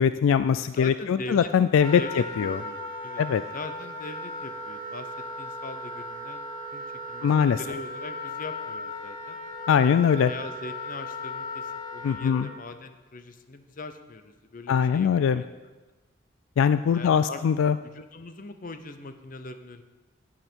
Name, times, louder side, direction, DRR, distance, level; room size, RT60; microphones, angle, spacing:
voice 1, 0.0-2.0 2.4-2.6 3.2-3.4 7.2-7.6 9.7-10.3 12.0-12.5 14.7-15.4 16.6-17.8, left 7 dB, 75° left, 13 dB, 0.3 m, -22 dB
voice 2, 0.8-1.5 1.9-3.2 3.5-6.5 6.7-9.4 10.2-15.5 16.9-17.4 17.9-19.8, left 2 dB, 40° left, 8 dB, 0.7 m, -41 dB
Wind instrument woodwind instrument, 1.8-12.5, left 2 dB, 20° left, 1.6 m, -37 dB
11.5 x 8.8 x 4.5 m, 1.2 s
head